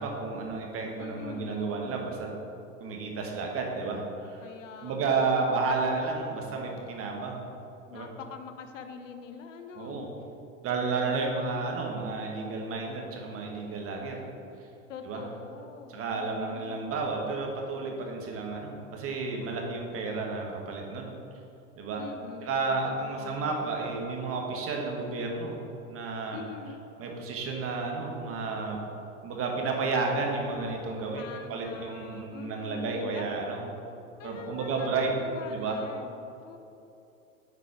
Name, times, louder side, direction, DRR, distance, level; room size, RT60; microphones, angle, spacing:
voice 1, 0.0-2.3 2.8-4.4 4.8-7.4 7.9-8.1 9.7-10.1 10.6-14.2 15.1-15.2 15.9-21.1 21.8-22.0 22.4-25.6 25.9-26.4 27.0-28.8 29.2-33.6 34.2-35.1 35.5-35.8, right 4 dB, 35° right, 0 dB, 1.5 m, -31 dB
voice 2, 1.0-1.8 4.4-5.6 7.9-10.1 11.0-11.7 14.9-17.0 22.0-23.8 26.3-26.9 31.1-33.3 34.2-34.9 35.1-36.6, left 6 dB, 75° left, 7 dB, 0.8 m, -45 dB
8.3 x 4.9 x 4.7 m, 2.8 s
hypercardioid pair, 90°, 39 cm